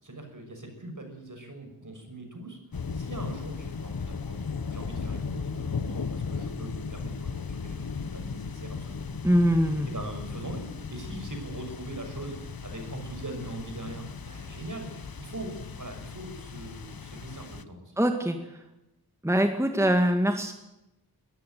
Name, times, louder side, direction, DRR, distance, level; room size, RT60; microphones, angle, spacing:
voice 1, 0.0-2.6 2.9-9.1 9.9-17.9, right 2 dB, 55° right, 4 dB, 6.3 m, -41 dB
sound 1, 2.7-17.6, left 5 dB, 65° left, 1.1 m, -36 dB
voice 2, 9.2-9.9 18.0-18.4 19.2-20.5, equal, 5° right, 5 dB, 2.1 m, -23 dB
21.5 x 13.5 x 9.3 m, 0.90 s
wide cardioid pair, 70°, 38 cm